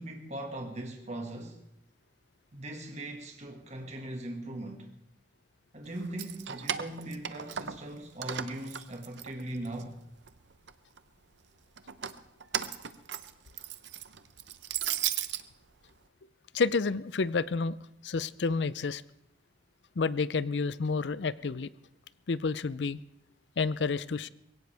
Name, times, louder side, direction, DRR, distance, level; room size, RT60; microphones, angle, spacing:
voice 1, 0.0-1.6 2.5-4.9 5.7-10.0, right 1 dB, 40° right, 1.9 m, -39 dB
Keys jangling, 6.0-7.9 8.2-9.8 10.2-11.0 11.8-15.4, right 9 dB, 85° right, 0.8 m, -36 dB
voice 2, 16.5-17.8 18.0-19.0 20.0-21.7 22.3-23.0 23.6-24.3, left 4 dB, 75° left, 0.6 m, -29 dB
21.5 x 17.5 x 3.5 m
head